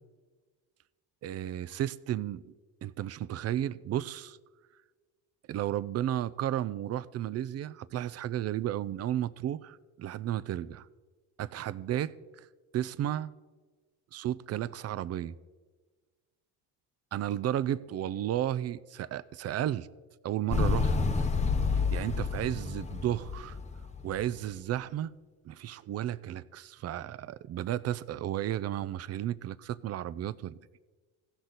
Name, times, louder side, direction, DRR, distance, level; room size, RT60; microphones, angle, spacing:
voice 1, 1.2-2.5 2.8-4.4 5.5-10.9 11.4-12.5 12.7-13.3 14.1-15.4 17.1-19.9 20.2-21.2 21.7-23.6 24.0-25.1 25.4-30.6, right 12 dB, 35° right, 0.4 m, -33 dB
Motorcycle, 20.5-24.4, left 4 dB, 15° left, 0.8 m, -29 dB
17.0 x 6.3 x 4.0 m
hypercardioid pair, 70°, 45 cm